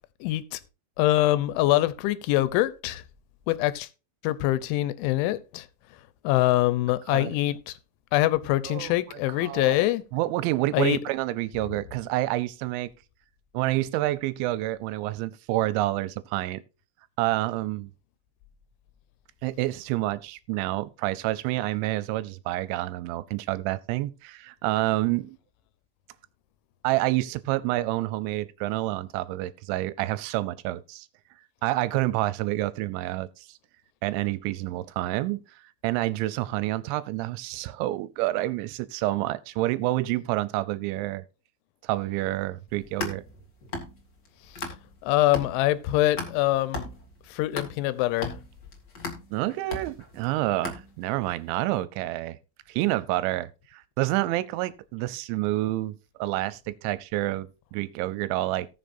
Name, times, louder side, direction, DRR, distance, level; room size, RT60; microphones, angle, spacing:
voice 1, 0.2-0.6 1.0-3.0 3.5-3.9 4.2-5.7 6.2-7.7 8.1-10.0 10.7-11.0 45.0-46.9 47.3-48.3, left 16 dB, 85° left, 3.1 m, -24 dB
voice 2, 8.7-12.9 13.5-16.6 17.2-17.9 19.4-25.4 26.8-31.1 31.6-33.3 34.0-35.4 35.8-41.2 41.8-43.2 49.3-52.4 52.7-58.7, right 17 dB, 85° right, 2.9 m, -28 dB
sound 1, 42.7-45.0 45.3-51.3, left 2 dB, 60° left, 1.0 m, -37 dB
18.0 x 6.6 x 2.6 m
omnidirectional pair, 5.3 m